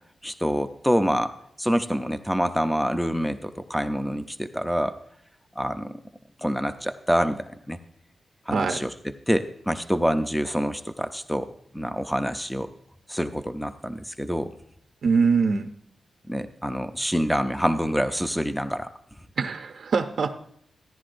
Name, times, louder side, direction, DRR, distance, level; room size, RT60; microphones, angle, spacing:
voice 1, 0.2-1.3 1.6-4.9 5.6-5.9 6.4-7.8 8.5-8.9 9.3-11.5 11.7-12.7 13.1-14.5 16.3-18.9, equal, ahead, 9 dB, 0.5 m, -26 dB
voice 2, 8.5-8.8 15.0-15.7 19.4-20.3, right 5 dB, 60° right, 5 dB, 0.6 m, -23 dB
16.0 x 10.5 x 2.5 m, 0.69 s
wide cardioid pair, 165°, 0 cm